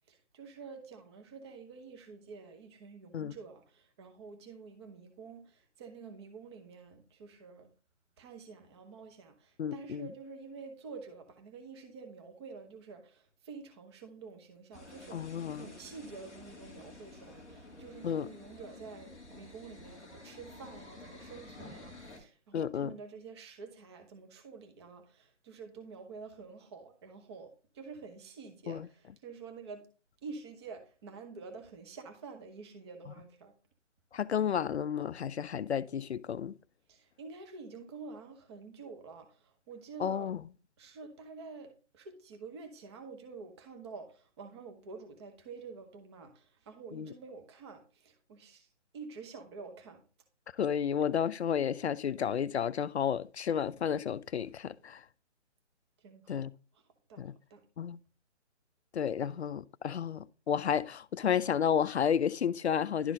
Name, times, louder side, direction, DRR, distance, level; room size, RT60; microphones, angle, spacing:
voice 1, 0.1-7.7 8.2-29.9 30.2-33.5 36.9-40.3 40.8-48.7 48.9-50.0 56.0-56.4 56.7-56.8 57.1-57.2 57.5-57.6, right 4 dB, 20° right, 0.9 m, -48 dB
voice 2, 9.6-10.1 15.1-15.7 18.0-18.3 22.5-22.9 28.7-28.9 34.1-36.5 40.0-40.4 46.9-47.1 50.6-55.0 56.3-56.5 57.2-57.3 57.8-58.0 58.9-63.1, left 8 dB, 65° left, 0.5 m, -32 dB
sound 1, 14.7-22.2, left 2 dB, ahead, 0.6 m, -51 dB
11.5 x 4.0 x 3.6 m
figure-of-eight pair, 145°, 36 cm